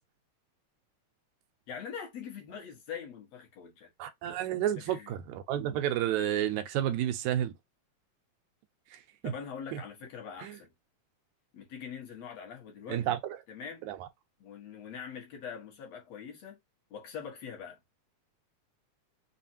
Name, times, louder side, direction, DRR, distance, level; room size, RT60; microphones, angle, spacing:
voice 1, 1.7-3.9 4.3-4.4 4.8-5.2 9.2-10.7 11.5-13.2 13.5-13.8 14.4-16.6 16.9-17.8, left 7 dB, 65° left, 2.4 m, -43 dB
voice 2, 4.0-7.5 8.9-9.3 9.7-9.8 10.4-10.6 12.9-13.4 13.8-14.1, right 11 dB, 90° right, 2.0 m, -31 dB
5.5 x 2.4 x 2.7 m
omnidirectional pair, 3.3 m